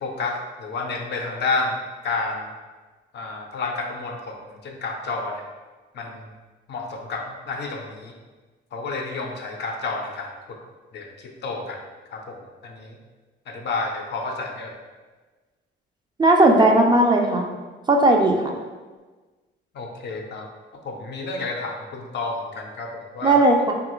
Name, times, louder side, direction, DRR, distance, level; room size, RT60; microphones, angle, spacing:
voice 1, 0.0-1.8 2.0-2.5 3.1-5.4 5.9-6.3 6.7-8.1 8.7-10.6 10.9-11.8 12.1-13.0 13.5-14.8 19.7-20.5 20.7-23.4, left 3 dB, 60° left, 2 dB, 0.5 m, -30 dB
voice 2, 16.2-17.5 17.9-18.6 23.2-23.7, right 2 dB, 20° right, 2 dB, 0.3 m, -17 dB
3.0 x 2.4 x 3.0 m, 1.3 s
cardioid pair, 90°, 20 cm